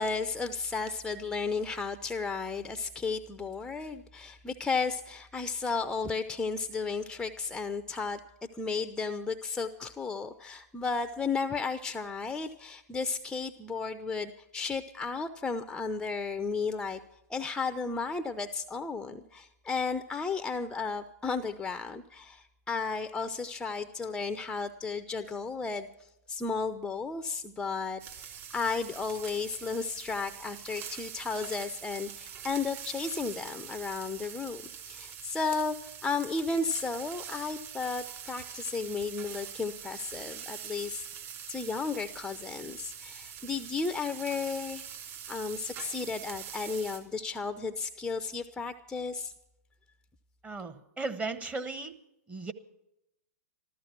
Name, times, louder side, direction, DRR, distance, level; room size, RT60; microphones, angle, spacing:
voice 1, 0.0-8.2 8.5-17.0 17.3-25.9 26.3-41.1 41.5-44.9 45.3-49.3, left 4 dB, 10° left, 8 dB, 0.6 m, -34 dB
sound 1, 28.0-47.0, right 9 dB, 35° right, 3.4 m, -44 dB
voice 2, 50.4-52.0 52.3-52.5, right 3 dB, 15° right, 8 dB, 1.1 m, -36 dB
14.0 x 13.5 x 5.9 m, 0.83 s
hypercardioid pair, 115°, 9 cm